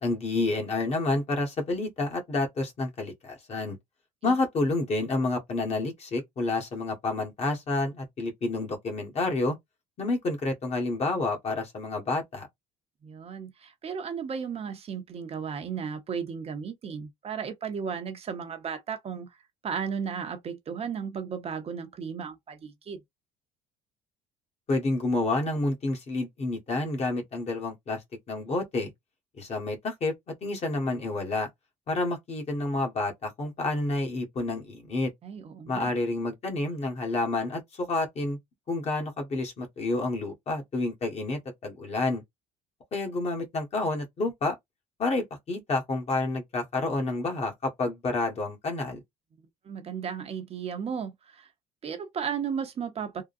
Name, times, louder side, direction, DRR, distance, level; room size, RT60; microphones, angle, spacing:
voice 1, 0.0-3.8 4.2-9.6 10.0-12.5 24.7-28.0 28.3-28.9 29.4-30.1 30.4-31.5 31.9-35.1 35.7-38.4 38.7-42.2 42.9-44.5 45.0-49.0, left 2 dB, 40° left, 1.3 m, -29 dB
voice 2, 13.0-19.4 19.6-23.0 35.2-35.9 49.6-51.5 51.8-53.2, right 7 dB, 35° right, 0.7 m, -35 dB
3.6 x 2.2 x 2.5 m
cardioid pair, 110°, 17 cm